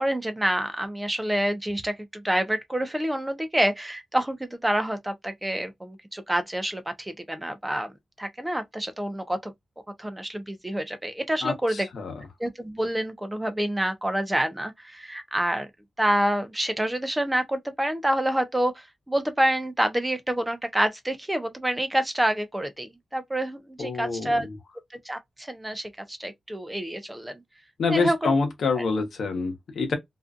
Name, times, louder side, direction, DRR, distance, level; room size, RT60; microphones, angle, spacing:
voice 1, 0.0-9.5 10.0-11.9 12.4-15.7 16.0-24.5 24.9-27.4 27.9-28.3 28.8-28.9, right 1 dB, 10° right, 0.3 m, -27 dB
voice 2, 11.4-12.1 23.8-24.4 27.8-29.9, left 4 dB, 75° left, 0.9 m, -26 dB
2.5 x 2.2 x 2.4 m
wide cardioid pair, 155°, 0 cm